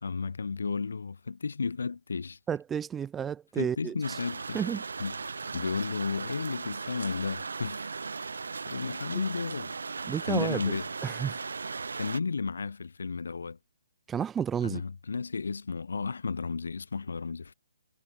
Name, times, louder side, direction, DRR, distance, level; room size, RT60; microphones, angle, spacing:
voice 1, 0.0-2.4 3.6-4.6 5.0-7.9 8.7-9.7 10.3-10.8 12.0-13.6 14.6-17.5, left 5 dB, 65° left, 3.2 m, -33 dB
voice 2, 2.5-4.2 4.5-4.8 10.1-10.8 11.0-11.4 14.1-14.8, right 8 dB, 10° right, 1.3 m, -31 dB
sound 1, 4.0-12.2, right 4 dB, 65° right, 4.3 m, -37 dB
figure-of-eight pair, 135°, 0 cm